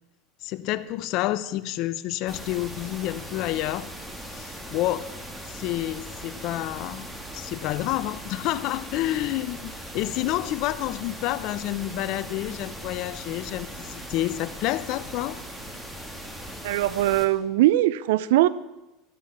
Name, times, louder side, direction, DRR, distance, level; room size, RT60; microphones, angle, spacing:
voice 1, 0.4-3.9 4.3-5.1 5.4-15.4, left 15 dB, 60° left, 15 dB, 0.8 m, -29 dB
sound 1, 2.3-17.3, equal, 10° right, 2.5 m, -39 dB
voice 2, 16.6-18.5, right 15 dB, 75° right, 18 dB, 0.6 m, -21 dB
13.0 x 13.0 x 5.9 m, 1.0 s
hypercardioid pair, 95°, 0 cm